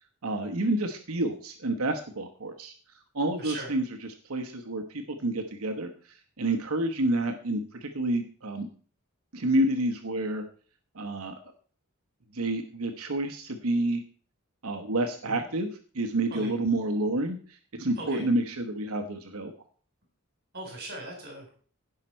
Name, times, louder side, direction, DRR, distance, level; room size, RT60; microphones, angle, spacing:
voice 1, 0.2-2.7 3.1-8.7 9.3-10.4 10.9-11.3 12.3-14.0 14.6-15.7 15.9-19.5, right 1 dB, 75° right, 5 dB, 1.1 m, -29 dB
voice 2, 3.4-3.7 15.3-15.4 16.3-16.5 18.0-18.2 20.5-21.5, right 1 dB, 45° right, 1 dB, 4.0 m, -39 dB
16.5 x 5.8 x 4.4 m, 0.43 s
head